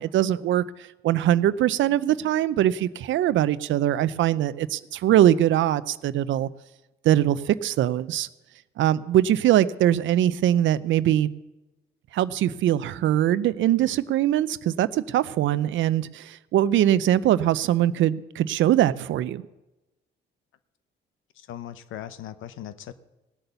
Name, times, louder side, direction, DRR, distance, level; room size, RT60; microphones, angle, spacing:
voice 1, 0.0-6.5 7.0-8.3 8.8-11.3 12.1-19.5, right 12 dB, 75° right, 16 dB, 0.6 m, -22 dB
voice 2, 21.4-22.9, left 11 dB, 80° left, 13 dB, 0.8 m, -39 dB
17.5 x 8.1 x 6.8 m, 1.0 s
cardioid pair, 90°, 20 cm